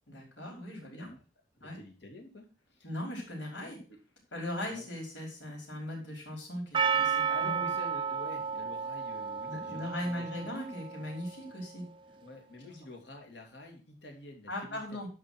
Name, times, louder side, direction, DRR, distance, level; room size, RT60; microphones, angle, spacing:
voice 1, 0.1-1.1 1.6-1.8 2.8-3.8 4.3-7.6 9.4-11.8 14.5-15.1, left 1 dB, 85° left, 0 dB, 5.3 m, -39 dB
voice 2, 1.6-2.9 3.9-4.0 4.7-4.9 7.3-10.6 12.2-15.1, left 2 dB, 70° left, 2 dB, 2.8 m, -48 dB
Percussion, 6.7-11.3, right 6 dB, 25° right, 0.4 m, -32 dB
12.0 x 5.2 x 6.0 m, 0.36 s
head